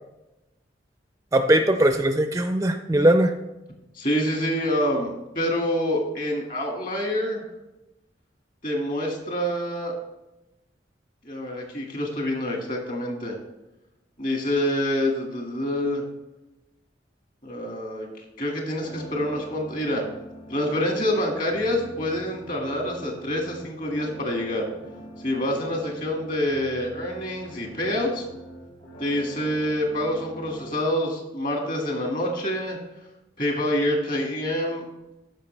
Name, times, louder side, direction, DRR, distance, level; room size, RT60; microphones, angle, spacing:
voice 1, 1.3-3.3, right 1 dB, 15° right, 7 dB, 0.4 m, -20 dB
voice 2, 3.9-7.4 8.6-9.9 11.2-13.4 14.2-16.0 17.4-18.1 18.4-20.0 20.5-24.7 25.2-28.3 29.0-32.8 33.4-34.8, left 1 dB, 45° left, 1 dB, 2.0 m, -26 dB
sound 1, 18.8-30.8, right 1 dB, 70° left, 2.6 m, -43 dB
14.0 x 5.5 x 3.3 m, 0.96 s
head